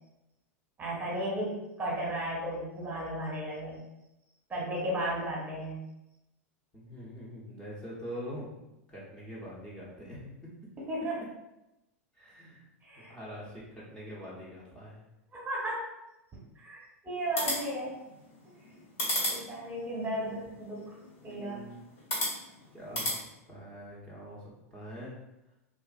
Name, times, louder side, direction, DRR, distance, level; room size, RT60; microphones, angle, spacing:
voice 1, 0.8-3.8 4.5-5.8 10.8-11.2 12.8-13.1 15.3-15.9 16.6-18.0 19.3-21.0 21.2-21.6, right 1 dB, 20° right, -4 dB, 1.0 m, -34 dB
voice 2, 6.7-8.5 8.9-10.5 12.1-12.6 12.9-15.0 21.1-21.8 22.7-25.1, equal, 10° left, -7 dB, 0.8 m, -44 dB
sound 1, 17.2-23.2, left 1 dB, 65° left, 1.4 m, -36 dB
2.4 x 2.4 x 2.4 m, 0.92 s
hypercardioid pair, 95°, 8 cm